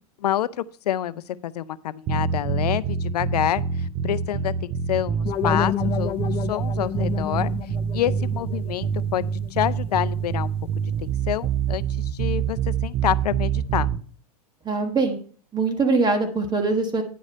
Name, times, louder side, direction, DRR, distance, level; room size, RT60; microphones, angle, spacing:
voice 1, 0.2-9.2 9.5-10.5 11.0-13.9, left 11 dB, 80° left, 16 dB, 0.5 m, -27 dB
sound 1, 2.1-14.0, right 7 dB, 35° right, 0.8 m, -26 dB
sound 2, 5.3-10.2, left 10 dB, 30° left, 0.7 m, -31 dB
voice 2, 14.6-15.2 15.5-17.0, right 3 dB, 20° right, 6 dB, 1.5 m, -22 dB
10.0 x 4.9 x 5.4 m, 0.43 s
hypercardioid pair, 105°, 20 cm